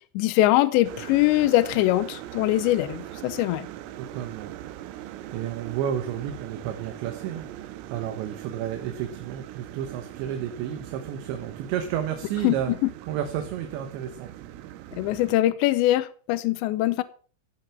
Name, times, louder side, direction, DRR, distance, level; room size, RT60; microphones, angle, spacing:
voice 1, 0.2-3.7 12.4-12.5 12.8-12.9 15.0-17.0, left 15 dB, 80° left, 2.6 m, -22 dB
sound 1, 0.8-15.4, right 13 dB, 90° right, 3.5 m, -41 dB
voice 2, 4.1-4.5 4.9-7.5 7.9-12.7 13.0-14.3, right 10 dB, 70° right, 3.1 m, -31 dB
17.0 x 7.5 x 5.9 m
omnidirectional pair, 5.9 m